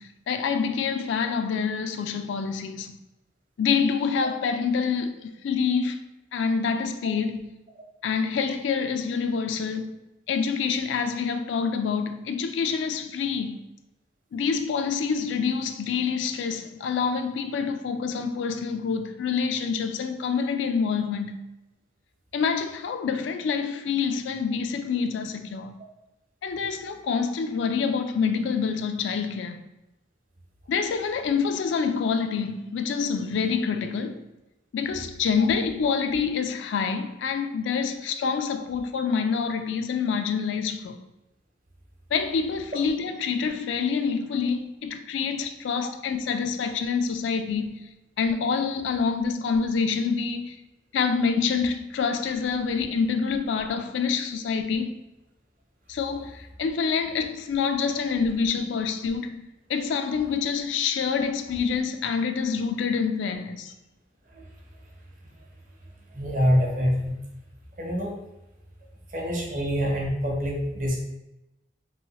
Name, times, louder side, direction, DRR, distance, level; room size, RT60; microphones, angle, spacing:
voice 1, 0.0-3.0 3.6-6.0 6.3-7.5 8.0-9.9 10.3-13.6 14.3-21.4 22.3-25.8 26.4-29.7 30.7-34.2 34.7-41.0 42.1-47.9 48.2-50.6 50.9-54.9 55.9-59.4 59.7-63.7, left 5 dB, 90° left, 0.3 m, -27 dB
voice 2, 66.1-67.1 67.8-68.1 69.1-71.0, equal, 45° right, 0.7 m, -25 dB
3.1 x 2.7 x 2.8 m
head